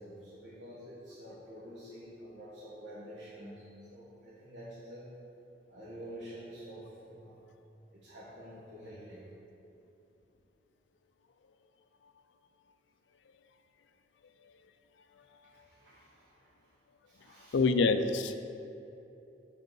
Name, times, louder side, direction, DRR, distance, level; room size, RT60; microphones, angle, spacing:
voice 1, 0.0-5.1 5.7-7.5 7.9-9.4 15.5-16.5 17.0-17.6, equal, 90° right, -9 dB, 1.2 m, -48 dB
voice 2, 17.5-18.4, left 4 dB, 85° left, 9 dB, 0.4 m, -26 dB
7.1 x 5.1 x 4.6 m, 2.9 s
head